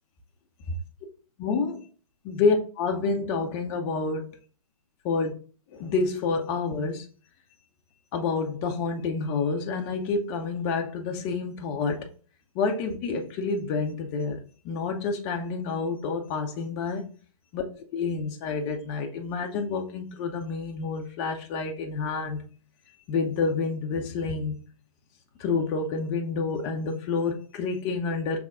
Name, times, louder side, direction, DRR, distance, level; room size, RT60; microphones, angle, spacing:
voice 1, 1.4-1.9 2.2-4.3 5.0-5.3 5.7-7.1 8.1-12.1 12.6-17.1 17.5-17.6 17.9-22.4 23.1-24.6 25.4-28.4, left 4 dB, 15° left, 0.3 m, -28 dB
5.7 x 3.3 x 2.4 m
figure-of-eight pair, 125°, 19 cm